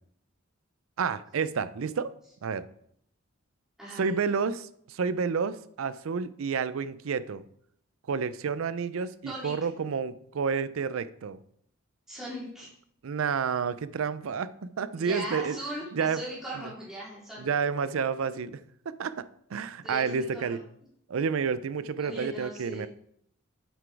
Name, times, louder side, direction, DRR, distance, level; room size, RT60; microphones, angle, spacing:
voice 1, 1.0-2.1 2.4-2.7 3.9-7.4 8.1-11.4 13.0-15.6 15.9-16.2 16.6-16.7 17.4-18.6 19.0-19.2 19.5-20.6 21.1-22.9, right 6 dB, 85° right, 15 dB, 0.4 m, -30 dB
voice 2, 3.8-4.3 9.2-9.5 12.1-12.7 15.0-17.5 19.8-20.6 22.0-22.9, right 1 dB, ahead, -8 dB, 3.0 m, -39 dB
7.9 x 6.1 x 4.6 m, 0.69 s
head